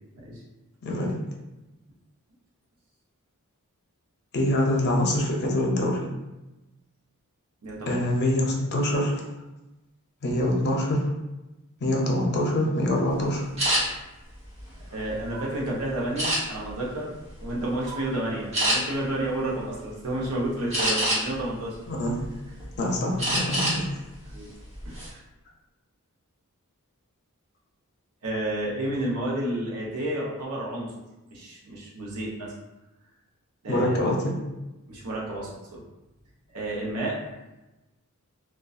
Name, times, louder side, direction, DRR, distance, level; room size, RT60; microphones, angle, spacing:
voice 1, 0.8-1.2 4.3-6.0 7.9-9.2 10.2-11.1 11.8-13.5 21.9-22.1 22.8-23.8 33.7-34.3, left 1 dB, 50° left, 0 dB, 0.5 m, -25 dB
voice 2, 7.6-8.1 14.9-17.1 17.4-21.8 24.3-24.5 24.8-25.2 28.2-30.9 31.3-32.6 33.6-34.1 34.9-35.8 36.5-37.3, right 1 dB, 75° right, -4 dB, 0.7 m, -31 dB
sound 1, 13.6-13.8 14.4-15.4 16.2-16.7 17.3-17.5 17.9-18.0 18.5-18.8 20.7-21.4 21.9-22.7 23.2-23.8 24.1-24.3 24.7-25.1, right 1 dB, 30° right, 1.1 m, -26 dB
2.5 x 2.2 x 2.3 m, 1.0 s
head